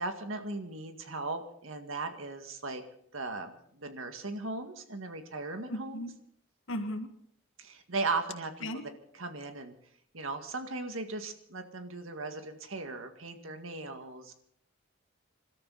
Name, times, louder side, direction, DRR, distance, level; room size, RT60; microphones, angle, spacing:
voice 1, 0.0-2.8 3.1-6.1 7.6-9.7 10.1-14.3, right 3 dB, 85° right, 6 dB, 2.0 m, -37 dB
voice 2, 5.7-6.1 6.7-7.1 8.6-8.8, left 1 dB, 75° left, 6 dB, 1.8 m, -35 dB
27.5 x 13.0 x 4.1 m, 0.66 s
head